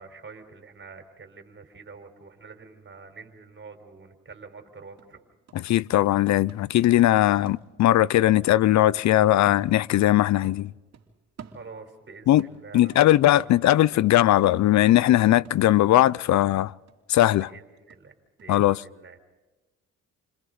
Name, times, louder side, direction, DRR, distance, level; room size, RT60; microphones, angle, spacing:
voice 1, 0.0-5.2 11.5-13.2 13.6-13.7 17.4-18.1 18.4-19.2, right 4 dB, 40° right, 4.5 m, -46 dB
sound 1, 4.5-4.6 5.0-8.1 8.5-10.2 10.4-12.0 12.4-18.0 18.4-18.5, right 6 dB, 55° right, 3.1 m, -50 dB
voice 2, 5.5-10.7 12.3-12.5 12.7-16.7 17.1-17.5 18.5-18.8, left 14 dB, 65° left, 0.6 m, -19 dB
29.5 x 26.5 x 4.0 m
cardioid pair, 90°, 30 cm